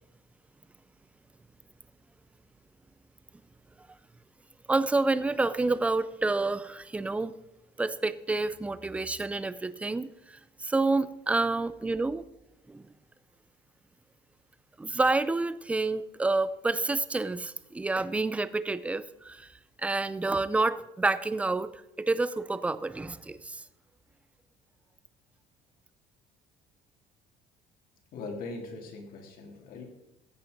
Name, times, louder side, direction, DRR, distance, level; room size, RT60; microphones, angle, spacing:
voice 1, 4.7-7.3 7.8-10.1 10.6-12.2 12.7-12.8 14.8-19.5 19.8-21.7 22.0-23.6, right 3 dB, 5° right, 15 dB, 0.4 m, -28 dB
voice 2, 28.1-29.8, left 3 dB, 60° left, 2 dB, 3.0 m, -40 dB
15.5 x 8.6 x 5.1 m, 0.90 s
cardioid pair, 175°, 17 cm